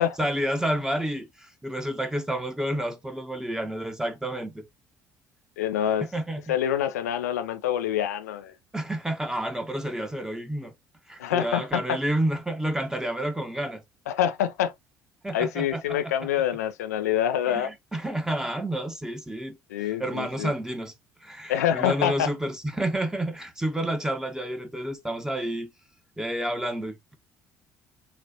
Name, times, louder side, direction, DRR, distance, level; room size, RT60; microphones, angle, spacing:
voice 1, 0.0-4.6 6.0-6.5 8.7-10.7 11.1-13.8 15.2-16.3 17.5-20.9 21.2-25.7 26.2-27.1, right 1 dB, 5° right, 1.1 m, -30 dB
voice 2, 5.6-6.1 6.5-8.5 11.2-12.0 14.1-14.7 15.3-17.7 19.7-20.5 21.5-22.3, left 10 dB, 80° left, 0.4 m, -26 dB
6.5 x 2.5 x 2.8 m
hypercardioid pair, 55°, 8 cm